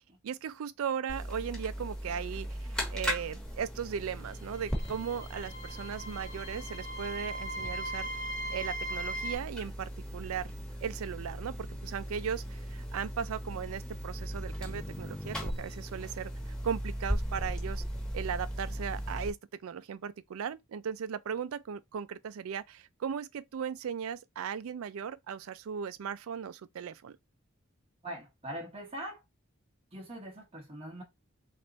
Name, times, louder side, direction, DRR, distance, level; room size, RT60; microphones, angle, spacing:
voice 1, 0.2-8.1 8.5-10.5 10.8-17.8 18.1-27.2, right 7 dB, 85° right, 0.4 m, -37 dB
sound 1, 1.1-19.3, equal, 5° left, 1.1 m, -38 dB
sound 2, 4.5-9.4, right 1 dB, 20° left, 0.8 m, -39 dB
voice 2, 28.0-29.2 29.9-31.0, right 1 dB, 25° right, 0.9 m, -42 dB
3.4 x 2.5 x 3.9 m
head